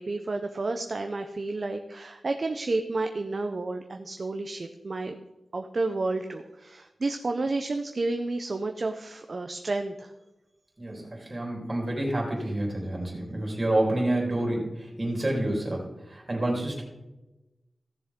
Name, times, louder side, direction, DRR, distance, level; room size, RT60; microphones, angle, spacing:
voice 1, 0.0-5.2 5.5-10.1, right 3 dB, 45° right, 5 dB, 0.6 m, -31 dB
voice 2, 10.8-16.8, right 1 dB, 30° right, -1 dB, 3.5 m, -28 dB
16.0 x 7.0 x 3.7 m, 1.0 s
wide cardioid pair, 110°, 0 cm